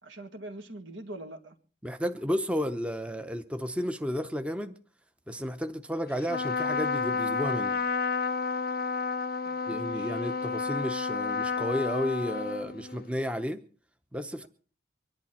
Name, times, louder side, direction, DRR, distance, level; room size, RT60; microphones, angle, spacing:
voice 1, 0.0-1.6 9.4-10.1, right 1 dB, 80° right, 2.2 m, -43 dB
voice 2, 1.8-4.8 5.3-7.8 9.7-13.6 14.1-14.5, equal, 5° right, 0.7 m, -32 dB
Trumpet, 6.2-13.1, left 5 dB, 50° left, 0.6 m, -31 dB
24.0 x 11.5 x 4.3 m
head